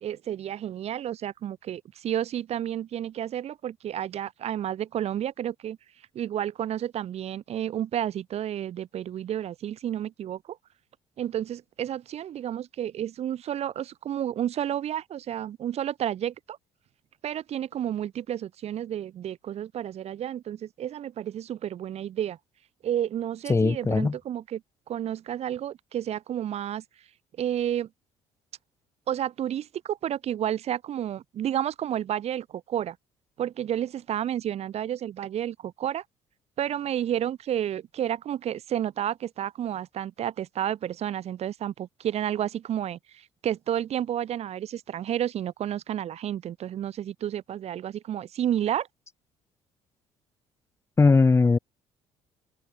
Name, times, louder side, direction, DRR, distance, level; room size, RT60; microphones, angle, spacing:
voice 1, 0.0-5.8 6.1-10.6 11.2-16.6 17.2-22.4 22.8-24.6 24.9-26.8 27.4-27.9 29.1-33.0 33.4-36.0 36.6-48.9, right 10 dB, 55° right, 2.4 m, -31 dB
voice 2, 23.5-24.2 51.0-51.6, left 4 dB, 20° left, 1.7 m, -19 dB
open air
supercardioid pair, 85°, 12 cm